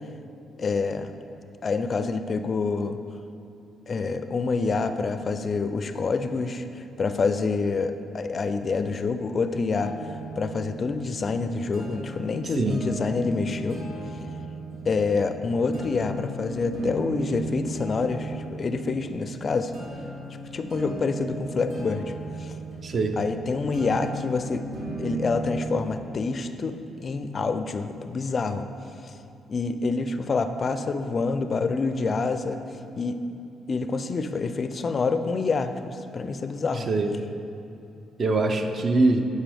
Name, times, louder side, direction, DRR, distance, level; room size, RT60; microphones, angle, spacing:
voice 1, 0.6-1.1 1.6-3.0 3.9-9.9 10.4-13.8 14.8-19.7 20.5-22.1 22.4-22.5 23.2-24.7 25.0-28.7 29.5-32.6 33.0-33.2 33.7-36.9, left 4 dB, 40° left, 9 dB, 0.4 m, -27 dB
sound 1, 9.7-25.7, right 2 dB, 80° right, 1.3 m, -37 dB
voice 2, 22.8-23.2 36.7-37.1 38.2-39.3, right 2 dB, 50° right, 6 dB, 0.5 m, -23 dB
8.9 x 4.5 x 3.5 m, 2.8 s
cardioid pair, 90°, 0 cm